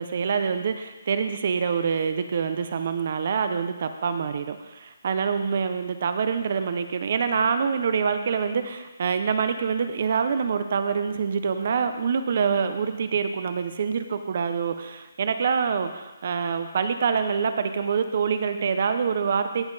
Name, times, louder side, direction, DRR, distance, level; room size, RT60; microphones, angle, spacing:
voice 1, 0.0-19.7, right 6 dB, 35° right, 9 dB, 0.5 m, -26 dB
16.0 x 5.5 x 3.9 m, 1.1 s
hypercardioid pair, 175°, 0 cm